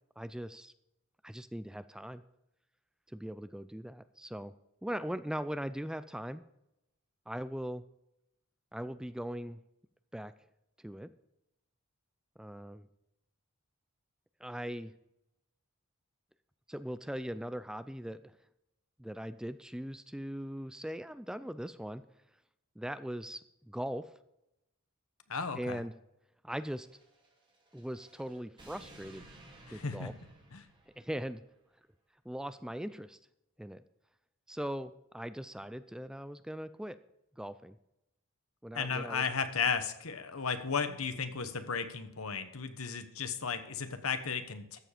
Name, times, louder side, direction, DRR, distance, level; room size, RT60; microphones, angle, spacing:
voice 1, 0.2-0.7 1.2-2.2 3.1-4.5 4.8-6.4 7.3-7.8 8.7-9.6 10.1-10.3 10.8-11.1 12.4-12.9 14.4-14.9 16.7-18.3 19.0-22.0 22.8-23.4 23.7-24.1 25.6-25.9 26.4-26.9 27.7-29.3 29.7-30.1 31.0-31.4 32.3-33.2 33.6-33.8 34.5-37.0 37.4-37.8 38.6-39.2, equal, 5° right, 13 dB, 0.3 m, -40 dB
voice 2, 25.3-25.8 29.7-30.2 30.5-30.7 38.7-44.8, left 5 dB, 85° left, 9 dB, 1.2 m, -34 dB
sound 1, 26.6-31.4, right 1 dB, 20° right, 2.4 m, -57 dB
13.5 x 7.4 x 5.0 m, 0.86 s
head